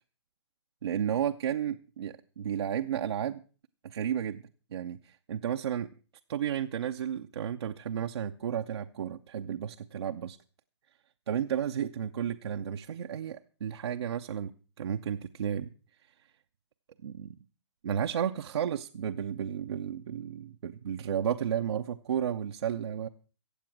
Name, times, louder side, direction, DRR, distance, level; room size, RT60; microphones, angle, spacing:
voice 1, 0.8-3.4 3.8-4.4 4.7-5.9 6.3-10.4 11.3-14.5 14.8-15.7 17.0-17.3 17.8-23.1, right 9 dB, 65° right, 5 dB, 0.7 m, -32 dB
15.5 x 8.5 x 6.0 m, 0.38 s
hypercardioid pair, 130°, 15 cm